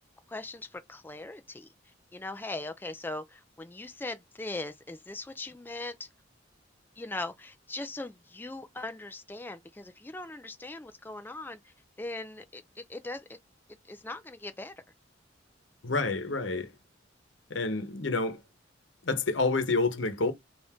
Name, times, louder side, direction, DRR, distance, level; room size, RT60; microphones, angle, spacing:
voice 1, 0.3-1.7 2.1-6.1 7.0-13.2 13.9-14.7, left 2 dB, 10° left, 0.4 m, -40 dB
voice 2, 15.8-16.7 17.5-18.4 19.0-20.3, left 3 dB, 80° left, 0.9 m, -28 dB
3.5 x 2.6 x 3.5 m
head